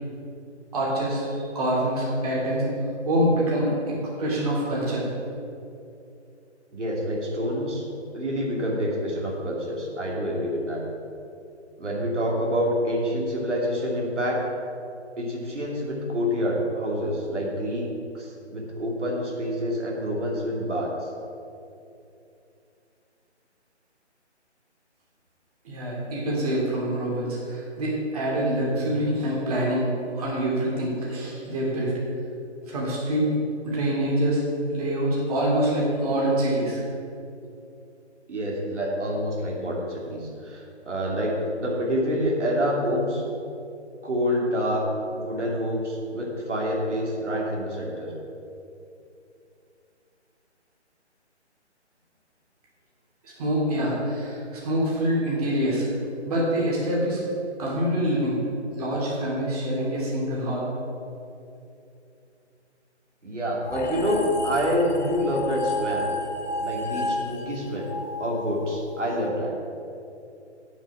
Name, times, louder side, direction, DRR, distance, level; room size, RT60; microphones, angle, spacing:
voice 1, 0.7-2.7 3.0-5.0 25.6-29.9 30.1-31.9 32.7-33.3 33.6-34.4 34.7-36.8 53.2-55.9 56.2-57.2 57.6-58.4 58.8-60.6, right 1 dB, 30° right, -5 dB, 2.8 m, -25 dB
voice 2, 6.7-7.8 8.1-10.8 11.8-14.4 15.2-17.9 18.1-20.9 28.7-28.9 38.3-43.2 44.0-44.8 45.1-48.1 63.2-66.1 66.6-69.5, equal, 80° right, -3 dB, 2.9 m, -27 dB
sound 1, 63.7-69.1, left 2 dB, 40° left, 1.0 m, -31 dB
8.8 x 7.3 x 7.0 m, 2.6 s
hypercardioid pair, 160°, 35 cm